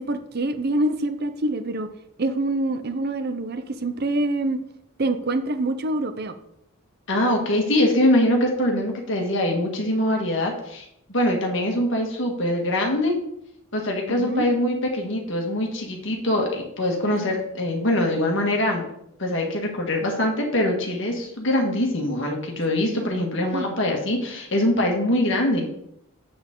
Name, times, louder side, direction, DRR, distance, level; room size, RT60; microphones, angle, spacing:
voice 1, 0.0-1.9 2.2-4.6 5.0-6.3 14.2-14.4 17.1-17.2 22.8-23.7, right 2 dB, 45° right, 9 dB, 0.6 m, -26 dB
voice 2, 7.1-13.2 13.7-18.9 19.2-25.7, left 1 dB, 55° left, 1 dB, 1.8 m, -23 dB
7.8 x 7.1 x 3.8 m, 0.77 s
head